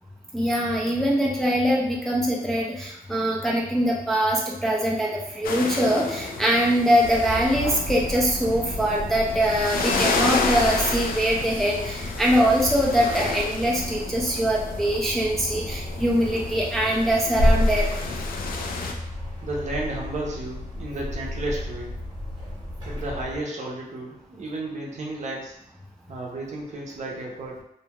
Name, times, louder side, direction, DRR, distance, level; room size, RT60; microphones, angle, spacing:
voice 1, 0.3-17.9, equal, ahead, -4 dB, 0.3 m, -23 dB
sound 1, 5.4-18.9, left 4 dB, 80° left, 0.4 m, -31 dB
sound 2, 7.0-23.4, left 1 dB, 30° right, 0.9 m, -31 dB
voice 2, 19.4-22.0 22.8-25.6 26.1-27.6, right 2 dB, 50° right, -2 dB, 0.6 m, -33 dB
2.6 x 2.3 x 2.8 m, 0.80 s
wide cardioid pair, 170°, 15 cm